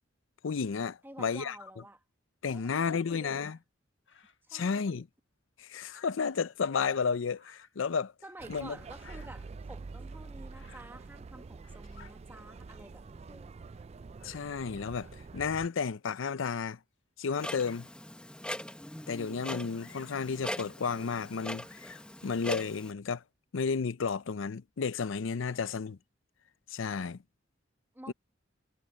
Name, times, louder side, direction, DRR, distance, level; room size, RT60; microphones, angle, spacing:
voice 1, 0.4-1.6 2.4-3.6 4.5-5.1 5.6-8.1 8.5-8.8 14.2-16.8 17.2-17.9 19.1-21.7 22.2-23.2 23.5-26.0 26.7-27.2 28.1-28.2, left 5 dB, 90° left, 0.5 m, -32 dB
voice 2, 1.0-2.0 2.5-3.6 4.4-5.0 8.2-13.6 25.5-25.9 27.9-28.1, right 1 dB, 10° right, 1.5 m, -50 dB
Bird vocalization bird call bird song, 4.1-4.8 5.7-6.3 7.3-7.8 8.9-9.4 10.5-10.9 11.5-12.1 13.0-13.1 14.1-14.5 15.4-15.8 16.4-16.5 17.2-18.0 19.7-20.2 21.3-22.2, left 6 dB, 70° left, 1.3 m, -56 dB
sound 1, 8.4-15.7, right 4 dB, 35° right, 0.3 m, -46 dB
Clock, 17.4-22.9, left 1 dB, 5° left, 0.9 m, -41 dB
head